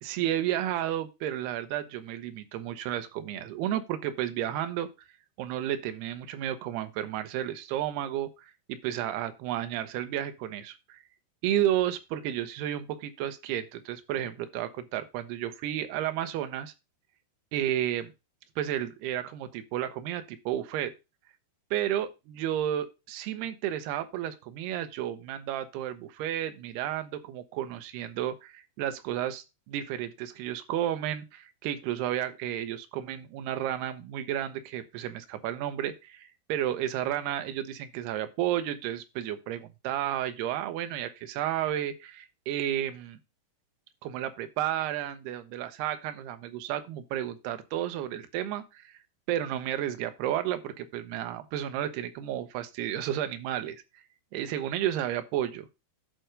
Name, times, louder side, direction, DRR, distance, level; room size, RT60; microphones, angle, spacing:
voice 1, 0.0-4.9 5.4-11.0 11.4-16.7 17.5-18.1 18.6-20.9 21.7-43.2 44.0-49.0 49.3-53.8 54.3-55.7, right 11 dB, 80° right, 9 dB, 3.0 m, -32 dB
11.0 x 4.6 x 5.1 m, 0.26 s
omnidirectional pair, 4.8 m